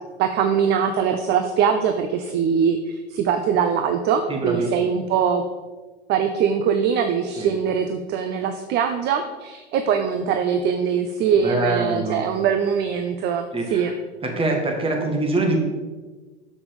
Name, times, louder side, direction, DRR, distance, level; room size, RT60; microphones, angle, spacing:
voice 1, 0.2-5.4 6.1-13.9, right 7 dB, 30° right, 7 dB, 0.6 m, -22 dB
voice 2, 4.3-4.9 7.4-7.5 11.4-12.3 13.5-13.9 14.2-15.6, right 2 dB, 15° right, 2 dB, 1.7 m, -24 dB
7.1 x 5.8 x 5.3 m, 1.3 s
figure-of-eight pair, 90°, 34 cm